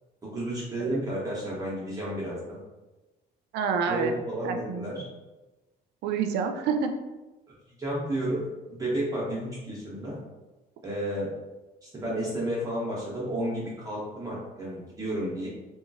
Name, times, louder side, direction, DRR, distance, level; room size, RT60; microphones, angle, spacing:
voice 1, 0.2-2.6 3.9-5.0 7.8-10.2 10.8-11.3 11.8-15.5, right 1 dB, 20° right, -7 dB, 0.7 m, -32 dB
voice 2, 3.5-4.1 4.4-4.9 6.0-6.9, right 6 dB, 80° right, 6 dB, 0.4 m, -28 dB
2.9 x 2.3 x 2.5 m, 1.1 s
cardioid pair, 110°, 17 cm